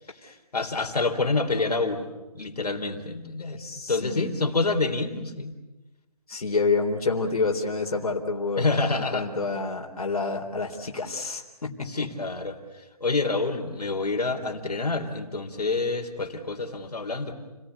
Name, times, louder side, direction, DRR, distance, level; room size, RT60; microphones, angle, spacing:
voice 1, 0.5-3.6 3.9-5.5 8.6-9.3 11.9-17.3, left 3 dB, 90° left, 3 dB, 4.0 m, -27 dB
voice 2, 3.5-4.4 6.3-8.7 9.0-12.1, left 4 dB, 70° left, 1 dB, 3.9 m, -28 dB
30.0 x 19.0 x 9.6 m, 1.1 s
hypercardioid pair, 170°, 20 cm